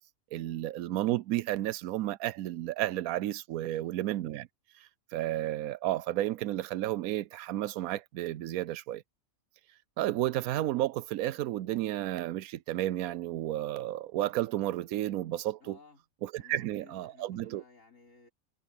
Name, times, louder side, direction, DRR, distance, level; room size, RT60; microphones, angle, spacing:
voice 1, 0.3-4.5 4.8-9.0 10.0-15.8 16.2-17.6, right 14 dB, 90° right, 1.0 m, -32 dB
voice 2, 3.6-3.9 15.6-16.1 16.3-18.3, left 4 dB, 65° left, 4.9 m, -57 dB
omnidirectional pair, 1.4 m